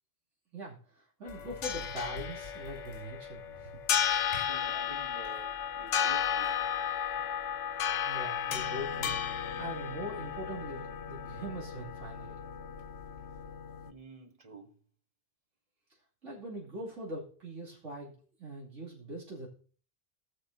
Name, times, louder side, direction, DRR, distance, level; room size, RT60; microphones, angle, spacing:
voice 1, 0.5-3.8 8.0-12.4 16.2-18.1 18.4-19.5, equal, 75° right, 3.2 m, -42 dB
sound 1, 1.3-13.9, left 8 dB, 70° left, 1.0 m, -34 dB
sound 2, 1.3-13.5, left 2 dB, 50° left, 6.7 m, -53 dB
voice 2, 4.3-6.7 13.8-14.8, right 3 dB, 30° right, 1.2 m, -50 dB
18.0 x 6.6 x 2.8 m
omnidirectional pair, 1.3 m